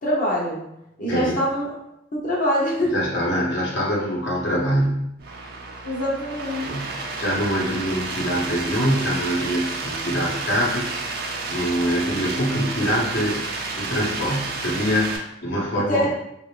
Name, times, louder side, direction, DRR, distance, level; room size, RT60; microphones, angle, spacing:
voice 1, 0.0-0.6 1.0-1.7 2.1-2.9 5.8-6.7 15.8-16.1, equal, 50° left, -4 dB, 0.7 m, -24 dB
voice 2, 2.9-5.1 6.6-16.1, equal, 75° left, -4 dB, 1.1 m, -24 dB
sound 1, 5.2-15.2, right 3 dB, 55° right, 0.5 m, -31 dB
3.3 x 2.5 x 3.2 m, 0.83 s
head